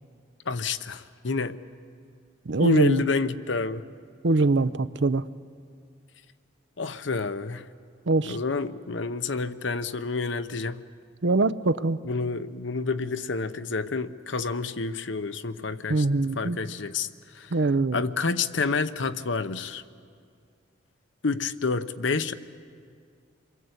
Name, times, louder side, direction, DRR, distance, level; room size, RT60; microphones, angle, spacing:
voice 1, 0.5-1.6 2.6-3.8 6.8-7.7 8.3-10.9 12.0-16.1 16.3-17.5 17.9-19.8 21.2-22.3, left 4 dB, 70° left, 0.9 m, -29 dB
voice 2, 2.5-3.0 4.2-5.3 8.1-8.4 11.2-12.0 15.9-16.6 17.5-18.0, right 3 dB, 65° right, 0.7 m, -23 dB
27.5 x 22.5 x 8.1 m
head